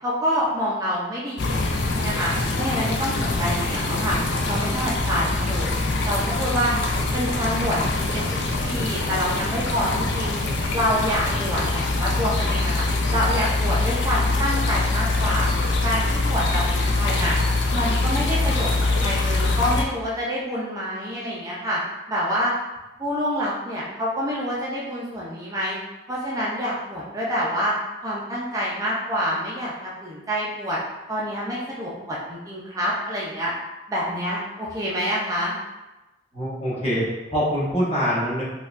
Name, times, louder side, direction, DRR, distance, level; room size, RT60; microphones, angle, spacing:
voice 1, 0.0-4.2 4.5-5.7 6.1-6.7 7.1-10.4 10.7-12.8 13.1-15.5 15.8-17.4 17.7-21.8 22.1-22.5 23.0-25.8 26.1-27.7 28.0-30.8 31.1-33.5 33.9-35.6, equal, 20° right, -6 dB, 0.5 m, -27 dB
sound 1, 1.4-19.8, left 2 dB, 65° left, 0.5 m, -24 dB
voice 2, 36.3-38.4, equal, 30° left, -8 dB, 1.1 m, -24 dB
4.3 x 2.3 x 2.5 m, 1.0 s
head